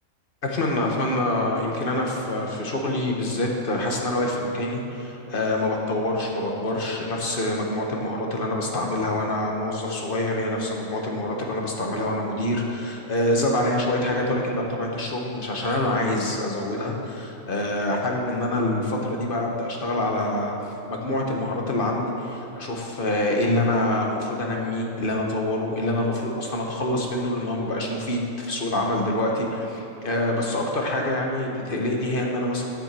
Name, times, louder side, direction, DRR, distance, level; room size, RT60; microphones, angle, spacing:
voice 1, 0.4-20.5 20.9-32.6, left 1 dB, 45° left, 0 dB, 1.5 m, -26 dB
9.9 x 7.6 x 7.5 m, 2.9 s
omnidirectional pair, 1.4 m